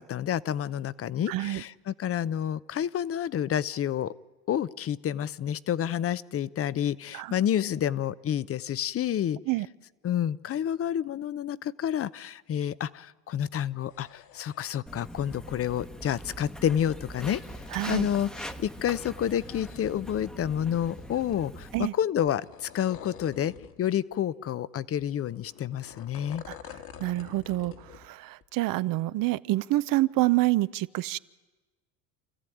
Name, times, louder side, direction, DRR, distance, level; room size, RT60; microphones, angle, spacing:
voice 1, 0.0-4.1 4.5-9.4 10.0-17.4 17.9-26.4, left 10 dB, 30° left, 19 dB, 0.7 m, -29 dB
voice 2, 1.3-1.6 7.1-7.3 9.5-9.7 17.7-18.1 21.7-21.9 26.5-26.6 27.0-31.2, right 18 dB, 45° right, 17 dB, 0.7 m, -27 dB
sound 1, 13.7-14.8 16.0-17.8 19.0-20.2 20.6-21.5 22.2-23.8 24.1-24.2 25.0-28.1 28.4-28.5, left 8 dB, 50° left, 1.9 m, -49 dB
Walk footsteps, 14.9-21.9, equal, ahead, 1.1 m, -42 dB
28.0 x 14.5 x 9.2 m, 1.2 s
hypercardioid pair, 85°, 45 cm